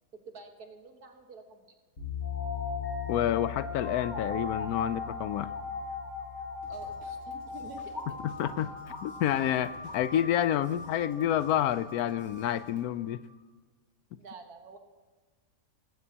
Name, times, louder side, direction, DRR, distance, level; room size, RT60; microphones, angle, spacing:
voice 1, 0.1-1.7 6.7-8.2 14.2-14.8, right 4 dB, 85° right, 4 dB, 2.0 m, -48 dB
sound 1, 2.0-9.1, left 9 dB, 70° left, 5.3 m, -41 dB
sound 2, 2.2-13.2, left 3 dB, 30° left, 1.4 m, -39 dB
voice 2, 3.1-5.5 8.2-8.7 9.0-13.2, left 11 dB, 85° left, 15 dB, 1.1 m, -29 dB
Drum kit / Drum, 6.6-12.9, right 2 dB, 50° right, 2.0 m, -57 dB
18.5 x 15.5 x 2.9 m, 1.3 s
omnidirectional pair, 1.6 m